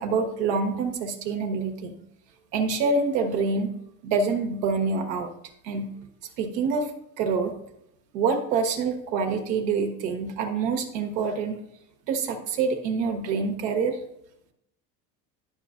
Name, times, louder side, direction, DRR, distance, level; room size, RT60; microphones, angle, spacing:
voice 1, 0.0-1.9 2.5-3.7 4.0-5.3 5.6-5.9 6.4-6.9 7.2-7.5 8.1-11.6 12.1-14.0, right 4 dB, 80° right, 5 dB, 1.3 m, -26 dB
10.5 x 6.2 x 2.5 m, 0.78 s
hypercardioid pair, 70°, 50 cm